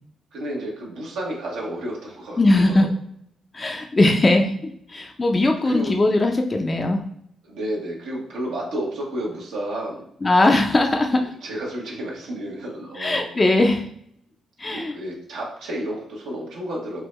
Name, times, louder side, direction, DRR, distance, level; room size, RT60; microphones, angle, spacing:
voice 1, 0.3-2.9 5.6-5.9 7.4-10.0 11.4-13.3 14.7-17.1, right 1 dB, 90° right, -3 dB, 0.9 m, -31 dB
voice 2, 2.4-2.9 3.5-7.0 10.2-11.3 12.9-13.9 14.6-14.9, left 2 dB, 30° left, 3 dB, 0.4 m, -20 dB
3.5 x 2.1 x 3.0 m, 0.71 s
cardioid pair, 75°, 0 cm